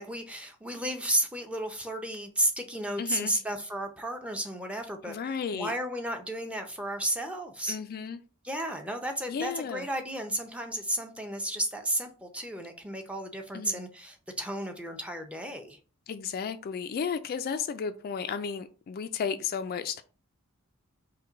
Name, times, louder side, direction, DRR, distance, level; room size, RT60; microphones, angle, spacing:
voice 1, 0.0-7.8 8.4-15.8, right 1 dB, 5° right, 0.6 m, -33 dB
voice 2, 3.0-3.4 5.0-5.7 7.7-8.2 9.3-9.9 13.5-13.8 16.1-20.0, left 6 dB, 45° left, 0.3 m, -33 dB
5.3 x 2.2 x 3.9 m
head